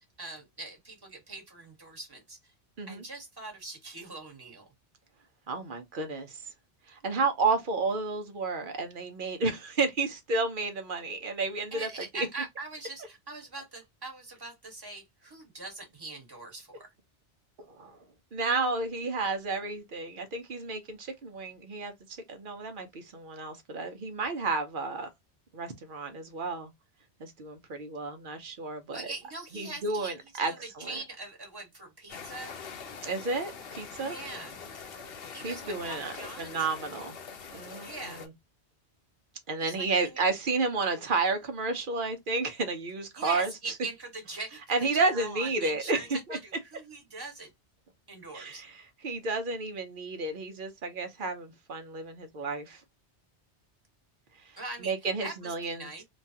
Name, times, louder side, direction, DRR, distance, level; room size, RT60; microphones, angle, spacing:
voice 1, 0.2-2.5 2.9-4.7 11.7-16.9 28.9-30.1 30.4-32.6 34.0-34.6 35.3-36.5 37.8-38.2 39.6-40.2 43.2-47.5 48.1-48.6 54.6-55.0 55.2-56.0, right 3 dB, 20° right, 1.4 m, -42 dB
voice 2, 5.5-6.4 6.9-11.9 12.1-12.3 17.7-18.0 18.3-25.1 25.5-26.7 27.2-29.1 29.5-31.0 33.0-34.2 35.4-37.2 37.5-38.3 39.5-43.5 44.7-46.0 46.3-46.4 48.3-52.8 54.5-55.9, right 3 dB, 55° right, 0.8 m, -31 dB
sound 1, 32.1-38.3, left 5 dB, 60° left, 0.9 m, -44 dB
3.2 x 2.3 x 2.6 m
omnidirectional pair, 1.1 m